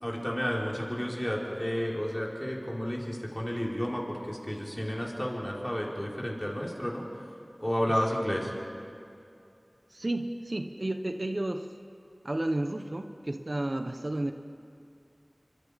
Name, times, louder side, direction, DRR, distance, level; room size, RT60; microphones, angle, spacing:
voice 1, 0.0-7.0 7.6-8.5, equal, 15° left, -2 dB, 5.0 m, -31 dB
voice 2, 9.9-11.7 12.2-14.3, right 1 dB, 55° right, 6 dB, 1.1 m, -32 dB
29.5 x 25.5 x 5.3 m, 2.5 s
wide cardioid pair, 45°, 0 cm